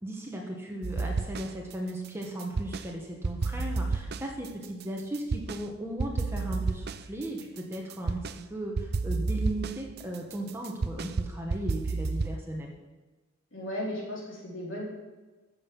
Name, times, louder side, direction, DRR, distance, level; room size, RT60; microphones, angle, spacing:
voice 1, 0.0-12.7, right 1 dB, 10° right, 0 dB, 1.4 m, -36 dB
sound 1, 0.8-1.7 2.0-2.9 3.2-5.6 6.0-8.4 8.8-12.4, right 3 dB, 50° right, 0.5 m, -31 dB
voice 2, 13.5-14.8, equal, 60° left, -4 dB, 4.1 m, -35 dB
13.5 x 7.8 x 5.5 m, 1.2 s
head